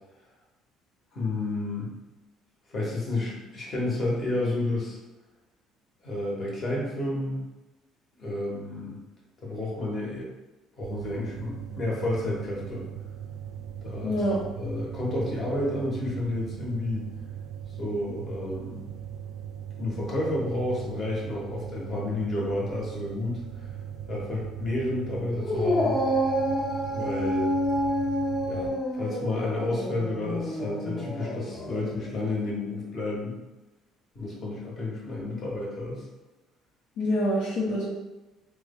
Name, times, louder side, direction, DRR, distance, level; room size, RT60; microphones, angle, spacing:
voice 1, 1.1-1.9 2.7-5.0 6.0-7.5 8.2-9.0 9.4-10.3 10.8-12.9 13.8-14.2 14.6-17.1 17.8-18.8 19.8-23.7 24.1-26.0 26.9-27.5 28.5-33.3 34.1-36.1, left 2 dB, 40° left, -4 dB, 1.1 m, -31 dB
sound 1, 10.8-28.7, right 9 dB, 85° right, 0.5 m, -39 dB
voice 2, 14.0-14.4 37.0-37.9, equal, 75° left, -9 dB, 1.0 m, -26 dB
Dog, 25.4-32.0, equal, 20° left, 0.7 m, -28 dB
3.1 x 2.2 x 3.6 m, 1.1 s
cardioid pair, 125°, 0 cm